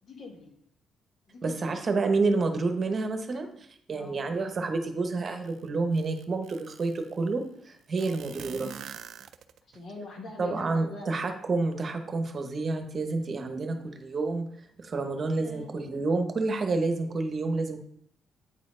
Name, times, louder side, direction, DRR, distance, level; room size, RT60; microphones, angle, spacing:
voice 1, 0.0-0.6 1.3-1.8 4.0-4.2 8.0-8.2 9.6-11.3 15.3-15.7, left 2 dB, 55° left, 2 dB, 1.6 m, -44 dB
voice 2, 1.4-8.7 10.4-14.5 14.8-17.8, right 3 dB, 40° right, 6 dB, 1.0 m, -29 dB
sound 1, 5.5-5.6 5.9-7.1 8.0-9.8, right 9 dB, 70° right, 0.4 m, -44 dB
8.9 x 4.3 x 3.8 m, 0.70 s
cardioid pair, 90°, 0 cm